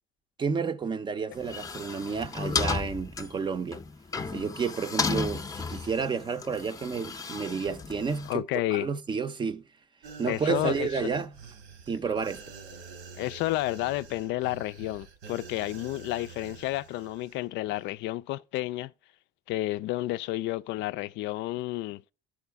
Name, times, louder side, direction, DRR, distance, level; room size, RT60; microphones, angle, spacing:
voice 1, 0.4-3.8 4.3-8.4 8.7-9.6 10.2-11.3 11.9-12.4, right 5 dB, 25° right, 0.5 m, -31 dB
sound 1, 1.3-8.3, left 4 dB, 20° left, 0.6 m, -34 dB
voice 2, 8.3-8.9 10.2-11.0 13.2-18.9 19.5-22.0, left 17 dB, 70° left, 0.4 m, -31 dB
sound 2, 10.0-17.4 17.7-17.8, right 5 dB, 90° right, 1.7 m, -47 dB
12.5 x 4.8 x 3.4 m
cardioid pair, 140°, 20 cm